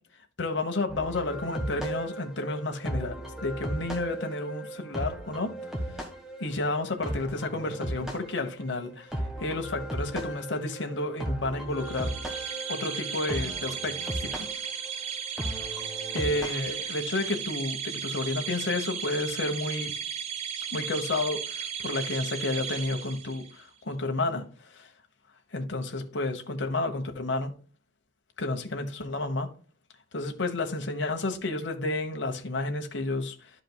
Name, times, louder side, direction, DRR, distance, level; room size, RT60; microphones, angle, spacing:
voice 1, 0.4-3.2 3.4-5.5 6.4-12.1 12.7-14.5 16.1-19.9 20.7-24.9 25.5-27.6 28.4-29.5 30.1-33.5, left 2 dB, 65° left, 1.1 m, -31 dB
sound 1, 0.9-16.9, right 1 dB, ahead, 1.3 m, -37 dB
sound 2, 11.8-23.6, right 8 dB, 35° right, 0.7 m, -35 dB
12.0 x 5.0 x 2.3 m
head